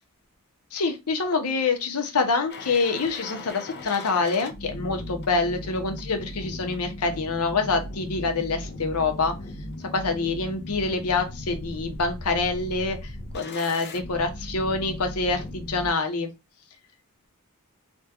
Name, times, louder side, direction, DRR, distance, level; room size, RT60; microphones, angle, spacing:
voice 1, 0.7-9.3 9.9-16.3, left 4 dB, 85° left, 5 dB, 0.8 m, -26 dB
sound 1, 2.5-15.9, left 1 dB, 50° left, 0.5 m, -38 dB
3.4 x 2.2 x 2.8 m, 0.24 s
head